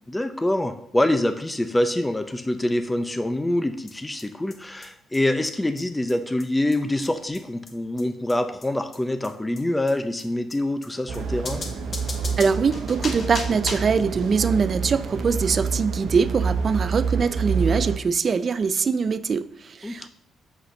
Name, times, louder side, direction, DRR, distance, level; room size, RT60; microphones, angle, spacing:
voice 1, 0.1-11.6 19.8-20.1, left 1 dB, 10° left, 9 dB, 0.6 m, -25 dB
sound 1, 3.9-4.0 4.2-4.3 4.5-4.6 4.8-4.9 5.1-5.2 5.4-5.5 5.8-5.9 6.1-6.2 6.4-6.5 6.7-6.8 7.0-7.1 7.3-7.4 7.7-7.8 8.0-8.1 8.3-8.4 8.6-8.7 8.9-9.0 9.2-9.3 9.6-9.7 9.9-10.0 10.2-10.3 10.5-10.6 10.8-10.9 11.1-11.2 11.5-14.0, left 3 dB, 45° left, 1.4 m, -36 dB
sound 2, 11.1-18.0, right 5 dB, 75° right, 0.9 m, -28 dB
voice 2, 12.4-20.1, right 5 dB, 45° right, 14 dB, 0.4 m, -23 dB
5.8 x 5.8 x 6.4 m, 0.77 s
cardioid pair, 90°, 0 cm